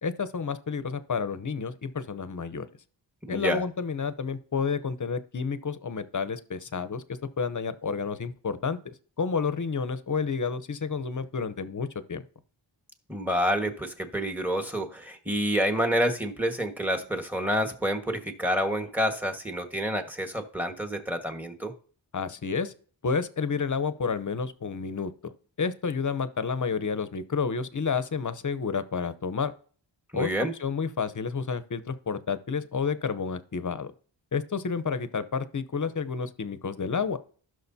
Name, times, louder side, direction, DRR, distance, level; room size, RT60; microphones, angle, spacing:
voice 1, 0.0-2.7 3.3-7.0 7.4-8.8 9.2-12.2 22.1-22.7 23.0-25.3 25.6-29.5 30.1-30.3 30.6-33.9 34.3-37.2, left 5 dB, 40° left, 13 dB, 0.8 m, -30 dB
voice 2, 3.3-3.6 13.1-21.7 30.1-30.5, equal, 5° right, 5 dB, 1.5 m, -28 dB
16.0 x 6.3 x 2.8 m, 0.43 s
wide cardioid pair, 75°, 46 cm